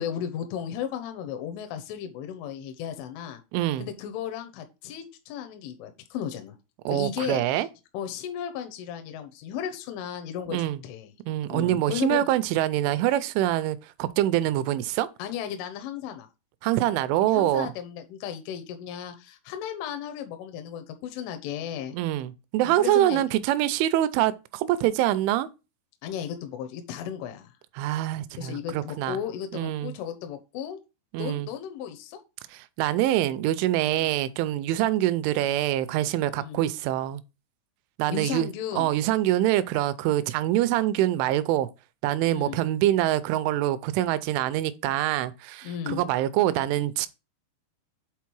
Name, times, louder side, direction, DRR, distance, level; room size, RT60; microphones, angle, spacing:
voice 1, 0.0-3.4 3.8-6.6 6.9-7.7 7.9-11.1 11.5-12.3 15.2-16.3 17.2-22.0 22.6-23.2 26.0-27.5 28.4-30.8 31.2-32.2 33.8-34.1 36.4-36.6 38.1-38.9 42.3-42.6 45.6-46.0, left 9 dB, 80° left, 3.2 m, -35 dB
voice 2, 3.5-3.9 6.9-7.7 10.5-10.8 11.3-15.1 16.6-17.7 21.9-25.5 27.8-29.2 29.5-29.9 31.1-31.5 32.5-37.2 38.0-38.5 38.7-41.7 42.0-47.1, right 13 dB, 85° right, 2.9 m, -25 dB
8.4 x 4.0 x 4.6 m
omnidirectional pair, 5.7 m